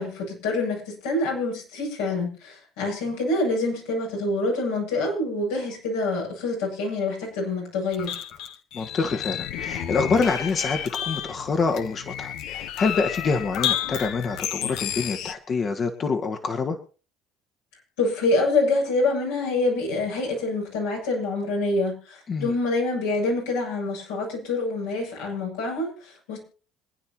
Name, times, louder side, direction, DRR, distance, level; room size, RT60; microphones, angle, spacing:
voice 1, 0.0-8.2 18.0-26.4, left 2 dB, 85° left, -2 dB, 8.0 m, -26 dB
sound 1, 7.9-15.3, left 10 dB, 70° left, 1.2 m, -31 dB
voice 2, 8.7-16.8 22.3-22.5, left 4 dB, 45° left, 4 dB, 1.8 m, -26 dB
26.5 x 9.9 x 3.0 m, 0.37 s
supercardioid pair, 70°, 0 cm